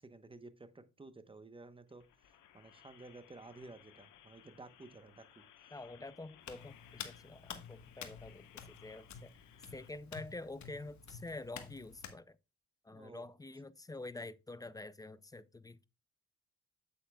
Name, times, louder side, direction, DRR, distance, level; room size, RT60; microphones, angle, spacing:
voice 1, 0.0-5.4 12.9-13.3, right 3 dB, 15° right, 0.9 m, -54 dB
sound 1, 1.9-9.9, left 10 dB, 85° left, 1.1 m, -62 dB
voice 2, 5.7-9.3 9.7-12.4 12.8-15.8, left 2 dB, 10° left, 0.4 m, -47 dB
Hands, 6.4-12.2, left 7 dB, 65° left, 1.3 m, -50 dB
8.4 x 8.1 x 2.3 m
cardioid pair, 90°, 30 cm